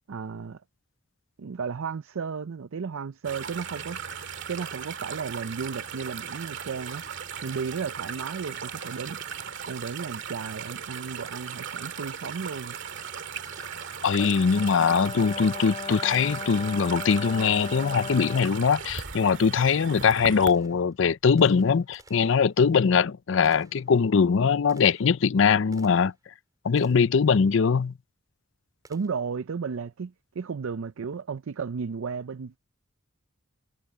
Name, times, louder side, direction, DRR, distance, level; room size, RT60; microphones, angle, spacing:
voice 1, 0.1-0.6 1.4-4.0 4.5-7.0 7.4-9.2 9.7-12.8 28.9-32.6, right 5 dB, 80° right, 0.5 m, -34 dB
sound 1, 3.2-20.5, right 7 dB, 65° right, 2.0 m, -37 dB
Gunshot gunfire, 13.4-14.3 16.6-16.7 17.4-26.3 26.8-27.2 28.8-29.4, right 2 dB, 20° right, 4.8 m, -57 dB
voice 2, 14.0-26.1 26.6-27.9, left 6 dB, 65° left, 0.5 m, -22 dB
Brass instrument, 14.2-18.5, left 5 dB, 25° left, 0.7 m, -37 dB
head